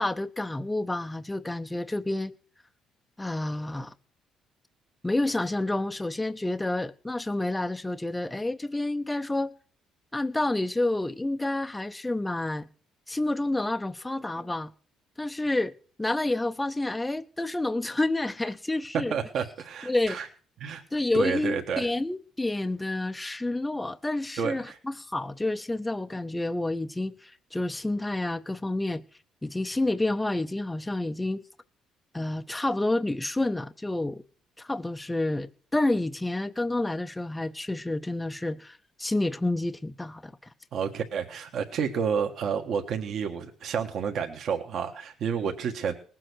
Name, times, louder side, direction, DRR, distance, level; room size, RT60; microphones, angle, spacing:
voice 1, 0.0-2.3 3.2-3.9 5.0-9.5 10.1-12.7 13.1-14.7 15.2-15.7 16.0-19.2 19.9-20.2 20.9-29.0 29.4-31.4 32.1-34.2 34.6-40.3, left 2 dB, 10° left, 0.6 m, -29 dB
voice 2, 18.9-20.3 20.6-20.8 21.1-21.9 24.4-24.8 40.7-45.9, right 7 dB, 55° right, 1.5 m, -30 dB
19.5 x 7.6 x 6.2 m
cardioid pair, 150°, 0 cm